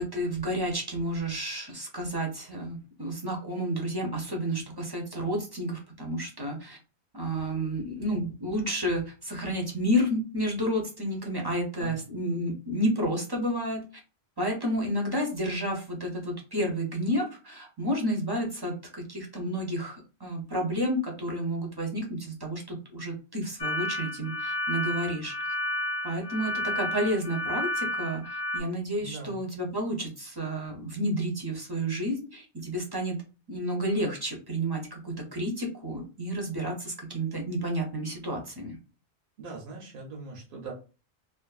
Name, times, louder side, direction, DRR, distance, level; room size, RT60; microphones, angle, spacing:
voice 1, 0.0-6.8 7.1-13.8 14.4-25.5 26.0-33.2 33.5-38.8, equal, 30° right, 0 dB, 0.5 m, -31 dB
sound 1, 23.6-28.6, left 1 dB, 45° left, 0.6 m, -31 dB
voice 2, 29.0-29.4 39.4-40.7, right 4 dB, 60° right, -1 dB, 0.8 m, -41 dB
2.5 x 2.5 x 2.3 m, 0.33 s
omnidirectional pair, 1.1 m